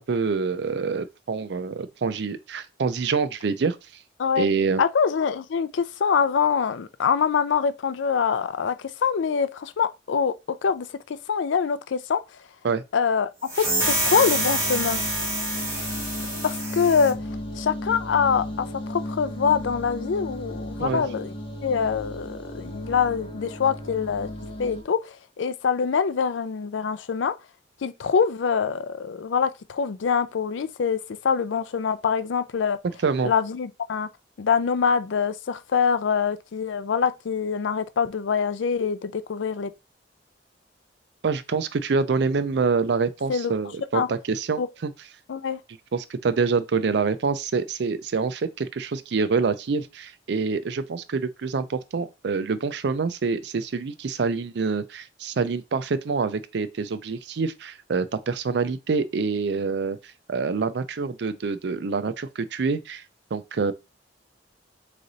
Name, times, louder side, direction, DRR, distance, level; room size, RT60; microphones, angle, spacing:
voice 1, 0.0-3.8 4.4-4.8 12.6-12.8 20.8-21.1 33.0-33.3 41.2-44.9 45.9-60.0 60.3-63.0 63.3-63.7, right 4 dB, 65° right, 0.4 m, -26 dB
voice 2, 4.8-10.3 10.6-12.2 12.9-13.3 13.6-15.0 16.4-17.2 17.6-21.3 21.6-24.3 24.6-27.3 27.8-32.8 33.2-34.1 34.4-39.7 43.3-43.5 43.9-44.1 44.6-44.7 45.3-45.6, left 6 dB, 85° left, 0.4 m, -24 dB
sound 1, 13.4-17.1, right 1 dB, 15° right, 1.8 m, -27 dB
sound 2, 13.8-24.8, left 1 dB, 30° left, 1.2 m, -35 dB
3.8 x 3.2 x 4.0 m
head